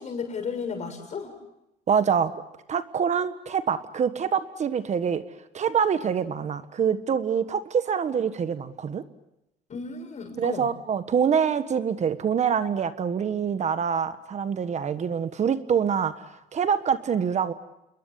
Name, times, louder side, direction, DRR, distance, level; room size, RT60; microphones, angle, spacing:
voice 1, 0.0-1.3 9.7-10.7, left 5 dB, 45° left, 6 dB, 6.7 m, -34 dB
voice 2, 1.9-2.3 2.7-5.2 5.5-9.0 10.4-17.5, right 7 dB, 45° right, 11 dB, 1.4 m, -25 dB
28.5 x 22.0 x 8.4 m, 0.86 s
cardioid pair, 110°, 17 cm